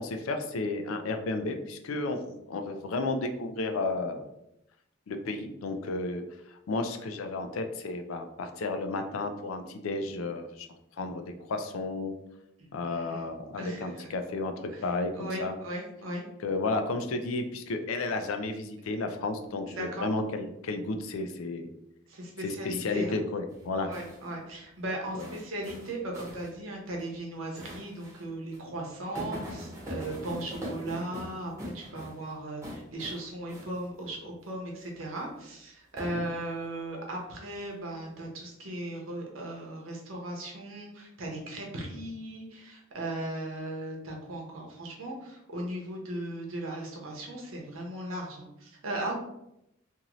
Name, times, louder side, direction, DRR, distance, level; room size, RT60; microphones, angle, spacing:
voice 1, 0.0-4.3 5.1-6.2 6.5-10.7 11.0-12.1 12.7-15.5 16.4-21.7 22.4-23.9 25.1-25.3 36.0-36.2, left 3 dB, 90° left, 7 dB, 0.4 m, -32 dB
voice 2, 12.6-14.1 14.7-14.8 15.1-16.3 19.7-20.1 22.1-23.1 23.9-49.1, right 1 dB, 80° right, -1 dB, 0.8 m, -37 dB
sound 1, 23.5-24.3 25.2-26.5 26.9-27.0 27.6-28.2 28.5-28.6 29.2-32.3 32.6-33.2 33.5-33.9 36.0-36.6, equal, 15° right, 1.1 m, -41 dB
2.6 x 2.5 x 3.0 m, 0.83 s
head